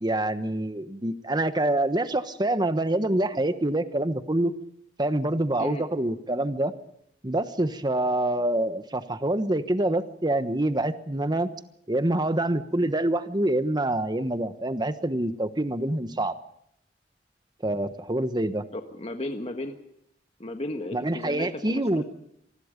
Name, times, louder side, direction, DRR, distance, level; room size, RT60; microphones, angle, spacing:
voice 1, 0.0-4.5 5.0-6.7 7.2-11.5 11.9-16.3 17.6-18.6 20.9-22.0, right 1 dB, 25° right, 11 dB, 1.2 m, -26 dB
voice 2, 18.7-19.8 20.4-22.0, left 1 dB, 35° left, 5 dB, 1.5 m, -34 dB
26.5 x 20.5 x 5.2 m, 0.77 s
head